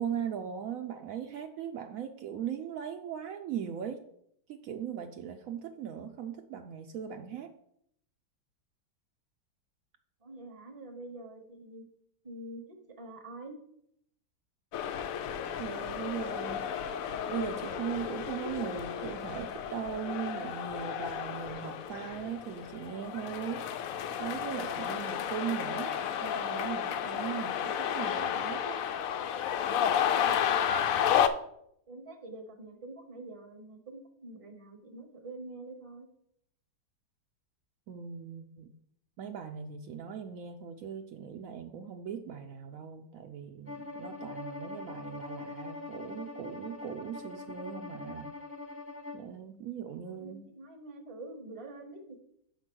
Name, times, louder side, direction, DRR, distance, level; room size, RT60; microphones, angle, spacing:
voice 1, 0.0-4.0 4.5-7.5 15.6-16.7 17.3-28.8 37.9-38.7 39.2-48.3 49.1-50.5, right 8 dB, 90° right, 6 dB, 0.7 m, -39 dB
voice 2, 10.2-11.8 12.2-13.5 31.9-36.1 50.1-52.2, right 2 dB, 25° right, 5 dB, 0.8 m, -46 dB
sound 1, 14.7-31.3, left 9 dB, 90° left, 0.7 m, -32 dB
Bowed string instrument, 43.7-49.3, left 2 dB, 10° left, 0.7 m, -43 dB
5.7 x 5.1 x 6.1 m, 0.72 s
omnidirectional pair, 2.0 m